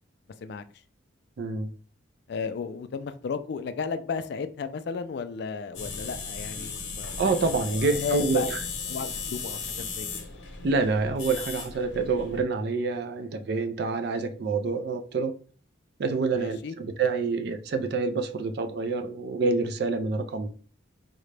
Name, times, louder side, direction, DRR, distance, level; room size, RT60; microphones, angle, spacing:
voice 1, 1.4-1.7 7.2-8.6 10.6-15.4 16.0-20.5, right 4 dB, 55° right, 0.4 m, -27 dB
voice 2, 2.3-7.2 7.7-8.5 8.9-10.3 16.4-16.7, left 5 dB, 55° left, 0.3 m, -34 dB
sound 1, 5.7-12.4, left 5 dB, 80° left, 0.8 m, -36 dB
3.8 x 2.1 x 3.2 m
head